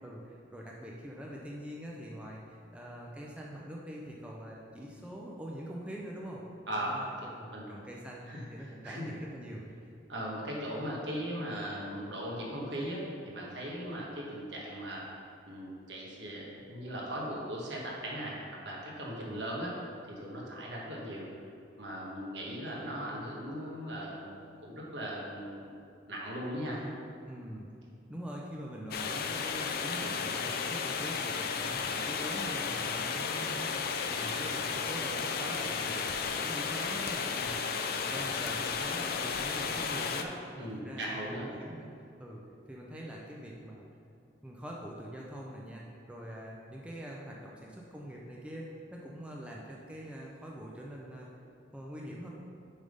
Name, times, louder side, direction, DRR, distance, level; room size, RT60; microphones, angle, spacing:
voice 1, 0.0-6.4 6.8-8.3 8.5-9.9 19.1-19.4 26.6-27.0 27.3-27.7 28.1-37.6 37.9-41.9 42.2-43.8 44.4-51.3 51.7-52.3, equal, 5° right, -3 dB, 0.5 m, -44 dB
voice 2, 6.7-7.0 7.5-7.6 8.3-8.4 8.8-9.1 10.1-15.1 15.5-19.7 20.0-21.3 21.8-24.3 24.6-25.7 26.1-26.8 40.6-41.5, equal, 65° right, -3 dB, 1.4 m, -38 dB
sound 1, 28.9-40.2, left 5 dB, 55° left, 0.4 m, -33 dB
7.2 x 3.5 x 5.3 m, 2.5 s
head